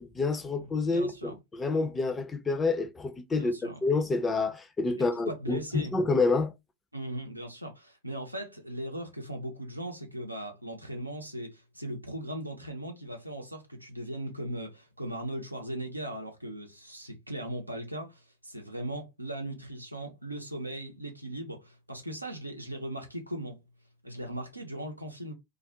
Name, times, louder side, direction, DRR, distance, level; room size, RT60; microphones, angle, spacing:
voice 1, 0.0-6.5, left 3 dB, 15° left, 0.4 m, -28 dB
voice 2, 0.6-1.3 3.4-3.8 5.0-5.9 6.9-23.6 24.0-25.3, right 1 dB, 85° right, 0.6 m, -38 dB
2.4 x 2.0 x 2.7 m
figure-of-eight pair, 90°, 0 cm